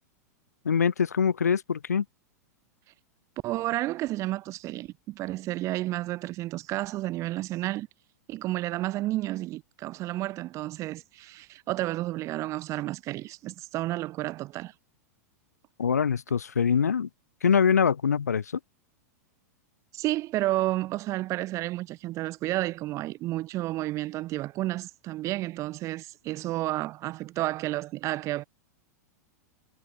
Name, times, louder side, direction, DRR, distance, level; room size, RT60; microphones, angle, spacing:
voice 1, 0.6-2.0 15.8-17.1 17.4-18.4, left 7 dB, 75° left, 1.0 m, -24 dB
voice 2, 3.4-7.9 8.3-14.7 19.9-28.4, right 16 dB, 35° right, 2.3 m, -31 dB
figure-of-eight pair, 95°, 9 cm